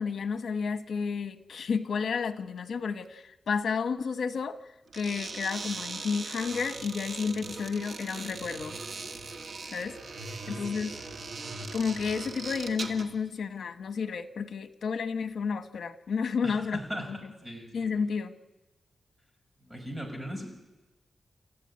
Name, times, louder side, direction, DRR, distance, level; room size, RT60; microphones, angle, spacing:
voice 1, 0.0-4.6 4.9-8.8 9.7-10.0 10.5-11.0 11.7-16.8 17.1-17.2 17.7-18.4, left 5 dB, 80° left, 9 dB, 1.2 m, -31 dB
sound 1, 4.9-13.1, right 3 dB, 70° right, 2.3 m, -40 dB
voice 2, 10.5-10.8 16.4-17.9 19.6-20.5, equal, 15° right, 3 dB, 5.8 m, -39 dB
29.5 x 14.5 x 9.8 m, 1.1 s
wide cardioid pair, 145°, 0 cm